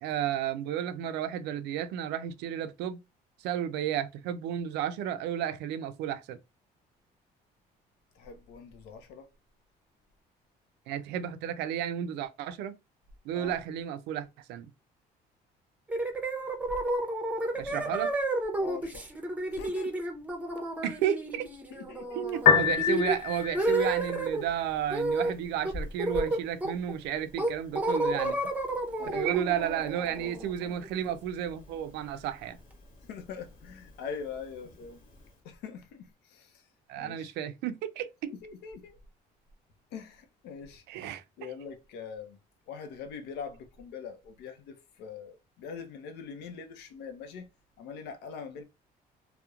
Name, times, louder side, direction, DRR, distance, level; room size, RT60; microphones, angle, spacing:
voice 1, 0.0-3.0 3.4-6.4 10.9-12.7 13.2-14.7 17.6-18.1 20.8-21.5 22.1-28.4 29.1-32.6 36.9-38.1 40.9-41.5, right 10 dB, 85° right, 0.4 m, -32 dB
voice 2, 8.2-9.3 13.3-13.5 17.7-18.0 18.6-19.2 19.5-20.0 21.7-22.3 29.0-29.2 33.1-35.0 35.4-36.6 37.0-37.3 38.2-39.0 39.9-40.8 41.4-42.4 42.7-47.5 47.8-48.6, left 6 dB, 85° left, 0.6 m, -43 dB
sound 1, 15.9-24.4 24.9-25.3 25.6-26.9 27.4-31.1, right 1 dB, 10° right, 0.6 m, -31 dB
Piano, 22.3-35.3, left 7 dB, 55° left, 0.8 m, -34 dB
2.8 x 2.1 x 2.3 m
cardioid pair, 110°, 17 cm